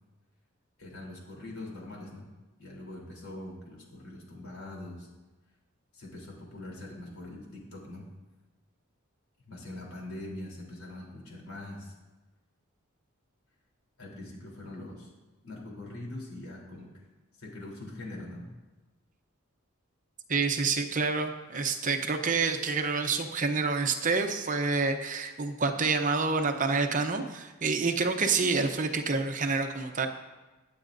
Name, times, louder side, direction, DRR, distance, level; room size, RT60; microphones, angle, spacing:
voice 1, 0.8-2.2 2.6-5.1 5.9-8.1 9.5-11.9 14.0-15.1 15.4-16.9 17.4-18.4, left 1 dB, 80° left, -2 dB, 3.5 m, -43 dB
voice 2, 20.3-30.1, right 4 dB, 40° right, 6 dB, 0.8 m, -28 dB
21.0 x 8.4 x 2.6 m, 1.2 s
head